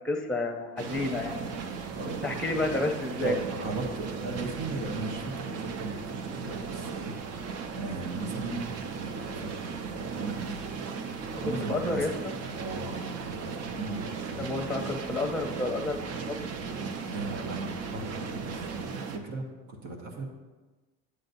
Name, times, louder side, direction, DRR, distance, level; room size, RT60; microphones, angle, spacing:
voice 1, 0.0-1.4 2.1-3.4 11.4-12.3 14.4-16.5, left 2 dB, 5° left, 4 dB, 0.8 m, -31 dB
sound 1, 0.8-19.2, right 5 dB, 50° right, 0.7 m, -36 dB
voice 2, 1.9-2.4 3.2-5.9 6.3-7.1 7.8-8.7 8.9-10.6 11.4-12.1 12.4-14.5 17.1-20.3, right 3 dB, 70° right, 1 dB, 1.4 m, -37 dB
8.2 x 7.6 x 2.7 m, 1.2 s
supercardioid pair, 95°, 31 cm